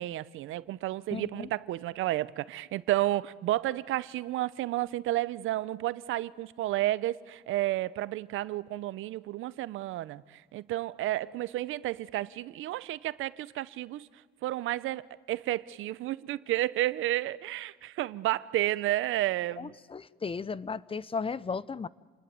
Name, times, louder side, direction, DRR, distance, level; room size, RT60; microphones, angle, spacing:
voice 1, 0.0-14.1 14.4-19.7, right 15 dB, 85° right, 0.7 m, -31 dB
voice 2, 1.1-1.5 19.6-21.9, left 5 dB, 30° left, 0.7 m, -35 dB
28.5 x 19.5 x 9.1 m
cardioid pair, 90°, 20 cm